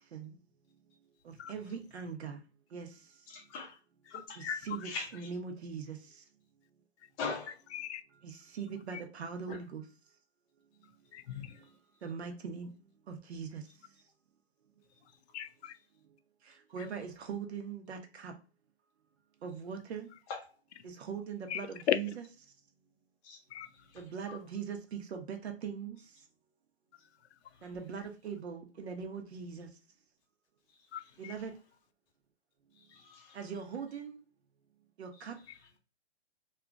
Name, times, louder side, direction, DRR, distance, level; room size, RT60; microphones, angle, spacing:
voice 1, 1.2-2.4 2.7-2.9 4.4-6.0 8.2-9.8 12.0-12.7 13.1-13.6 16.5-18.3 19.4-20.1 20.8-22.1 23.9-26.0 27.6-29.7 31.2-31.5 33.3-34.2 35.0-35.4, right 6 dB, 70° right, 0.9 m, -41 dB
voice 2, 3.3-3.8 4.1-4.4 4.8-5.3 7.2-7.5 9.5-9.6 20.3-20.4 23.2-23.4 32.8-33.4, left 4 dB, 20° left, 0.5 m, -41 dB
voice 3, 4.1-4.9 7.0-7.4 7.7-8.0 8.9-9.0 11.1-11.6 15.3-15.7 16.8-16.9 21.5-22.0 23.5-23.7 24.3-24.4 30.9-31.3 35.5-35.6, left 10 dB, 75° left, 0.5 m, -37 dB
2.8 x 2.5 x 2.4 m
hypercardioid pair, 145°, 33 cm